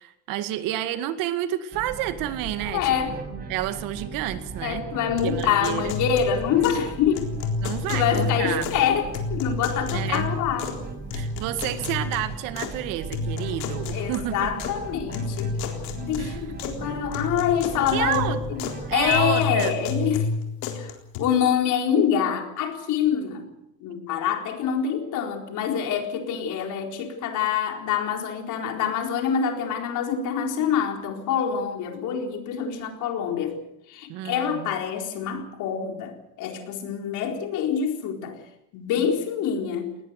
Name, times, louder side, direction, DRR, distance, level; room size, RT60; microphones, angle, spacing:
voice 1, 0.0-4.8 5.2-5.9 7.6-8.7 9.9-10.3 11.1-14.5 16.2-16.5 17.9-18.4 18.9-19.7 34.1-34.7 39.6-39.7, right 13 dB, 70° right, 11 dB, 2.1 m, -30 dB
sound 1, 1.7-19.2, right 4 dB, 30° right, 6.9 m, -38 dB
voice 2, 2.6-3.2 4.6-7.3 7.9-10.8 13.9-15.5 16.0-18.6 18.9-20.3 20.7-20.9 21.2-23.5 23.8-33.6 33.9-38.4 38.7-39.9, left 8 dB, 60° left, 4 dB, 4.3 m, -26 dB
sound 2, 5.2-6.9 7.1-8.9 9.1-10.8 11.1-12.7 13.1-14.8 15.1-16.8 17.1-18.8 19.1-21.2, left 4 dB, 90° left, 4.0 m, -30 dB
20.0 x 18.5 x 8.3 m, 0.82 s
cardioid pair, 140°, 34 cm